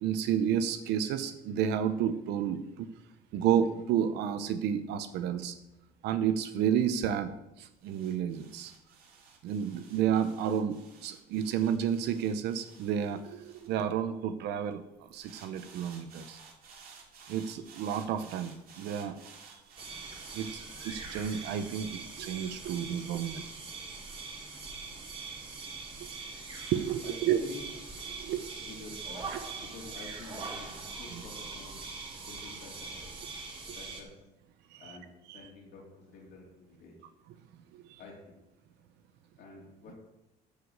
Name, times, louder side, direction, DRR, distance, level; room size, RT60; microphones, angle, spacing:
voice 1, 0.0-2.9 3.3-5.5 6.0-7.3 7.6-8.7 9.4-14.8 15.1-16.4 17.3-19.2 20.3-23.6 26.7-27.4 28.1-28.4 29.3-29.4 31.1-31.2 34.7-35.0 35.3-35.4 37.7-38.0, right 9 dB, 85° right, 9 dB, 0.8 m, -31 dB
sound 1, 5.5-14.4 15.1-21.3, right 5 dB, 60° right, 2.8 m, -55 dB
sound 2, 19.8-34.0, right 4 dB, 30° right, 2.7 m, -42 dB
voice 2, 27.0-27.6 28.6-29.2 29.6-31.8 32.2-33.1 33.7-34.1 34.8-37.0 38.0-38.4 39.4-40.0, left 3 dB, 75° left, -3 dB, 3.4 m, -48 dB
11.5 x 4.9 x 8.0 m, 0.93 s
cardioid pair, 110°, 17 cm